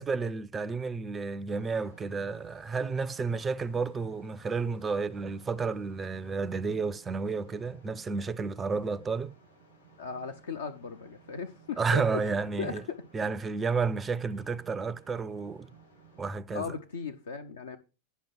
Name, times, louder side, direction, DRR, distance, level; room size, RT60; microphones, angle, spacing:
voice 1, 0.0-9.3 11.8-12.8 13.1-15.7 16.2-16.7, right 4 dB, 15° right, 0.5 m, -31 dB
sound 1, 1.5-16.4, right 5 dB, 85° left, 7.4 m, -57 dB
voice 2, 10.0-12.2 12.6-13.0 16.5-17.8, left 5 dB, 65° left, 0.8 m, -37 dB
10.5 x 5.7 x 5.8 m
figure-of-eight pair, 90°, 0 cm